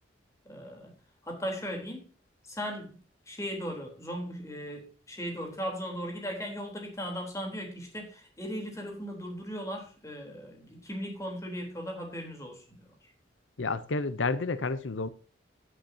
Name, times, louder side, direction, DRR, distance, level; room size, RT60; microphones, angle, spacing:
voice 1, 0.5-0.9 1.2-2.1 2.5-3.0 3.3-12.9, equal, 15° left, 3.6 m, -37 dB
voice 2, 13.6-15.1, left 3 dB, 90° left, 0.7 m, -30 dB
17.0 x 8.1 x 2.8 m
head